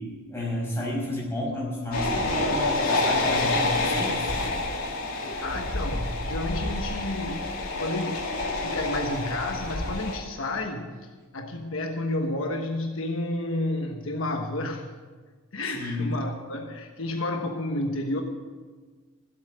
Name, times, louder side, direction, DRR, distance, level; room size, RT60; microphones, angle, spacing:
voice 1, 0.0-4.3 15.7-16.1, left 1 dB, 10° left, -4 dB, 5.6 m, -31 dB
sound 1, 1.9-10.2, left 2 dB, 90° left, 2.7 m, -28 dB
voice 2, 5.4-7.5 7.8-8.2 8.6-14.9 15.5-18.2, left 2 dB, 70° left, 3 dB, 1.2 m, -31 dB
16.5 x 8.3 x 8.0 m, 1.4 s
head